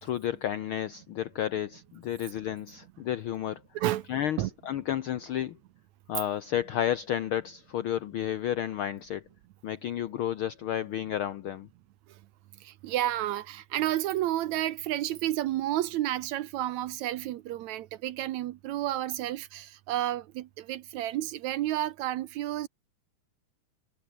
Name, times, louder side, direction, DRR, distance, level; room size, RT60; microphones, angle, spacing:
voice 1, 0.0-3.6 4.1-5.6 6.1-9.2 9.6-11.7, left 10 dB, 70° left, 1.2 m, -31 dB
voice 2, 3.8-4.1 4.4-4.5 12.6-22.7, right 14 dB, 70° right, 2.0 m, -31 dB
omnidirectional pair, 3.6 m